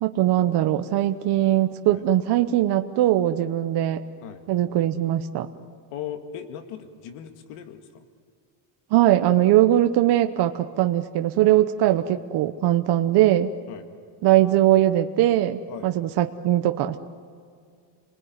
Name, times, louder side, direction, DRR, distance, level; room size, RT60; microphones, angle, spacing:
voice 1, 0.0-4.0 4.5-5.5 8.9-13.5 14.2-17.0, right 13 dB, 50° right, 7 dB, 1.0 m, -20 dB
voice 2, 5.9-8.0 11.8-12.0 13.7-13.9 15.7-15.9, left 9 dB, 85° left, 7 dB, 2.1 m, -38 dB
29.5 x 20.5 x 9.6 m, 2.2 s
cardioid pair, 175°, 50 cm